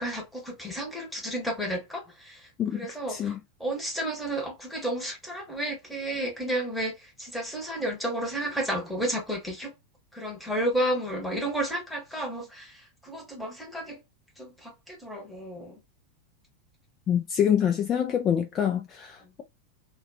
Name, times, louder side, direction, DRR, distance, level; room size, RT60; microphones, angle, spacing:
voice 1, 0.0-9.7 10.1-14.0 14.4-15.8, right 1 dB, ahead, 1.0 m, -32 dB
voice 2, 3.1-3.4 17.1-19.4, left 9 dB, 30° left, 0.3 m, -26 dB
2.4 x 2.2 x 2.6 m
figure-of-eight pair, 90°, 0 cm